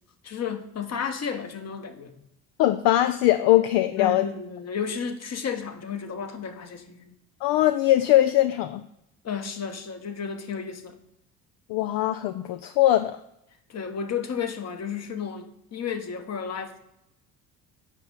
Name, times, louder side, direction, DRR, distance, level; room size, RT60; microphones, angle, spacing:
voice 1, 0.2-2.2 4.0-7.1 9.2-11.0 13.7-16.8, left 6 dB, 40° left, 1.2 m, -32 dB
voice 2, 2.6-4.3 7.4-8.8 11.7-13.2, left 14 dB, 60° left, 0.5 m, -21 dB
8.2 x 5.7 x 3.9 m
hypercardioid pair, 60°, 39 cm